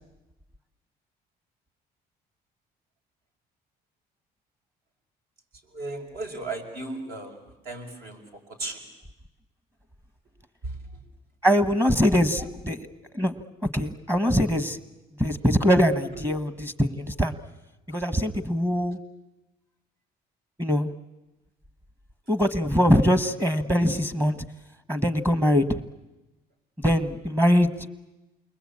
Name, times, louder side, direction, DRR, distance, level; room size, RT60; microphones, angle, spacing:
voice 1, 5.6-8.2 8.5-8.8 10.6-10.8 11.8-12.5 16.1-16.2 26.9-27.0, right 2 dB, 65° right, 3 dB, 5.5 m, -36 dB
voice 2, 11.4-12.9 13.1-13.3 13.7-14.8 15.2-17.3 17.9-19.0 20.6-20.9 22.3-24.4 24.9-25.8 26.8-27.9, equal, 15° right, 12 dB, 1.2 m, -22 dB
28.5 x 22.0 x 8.6 m, 1.0 s
cardioid pair, 110°, 17 cm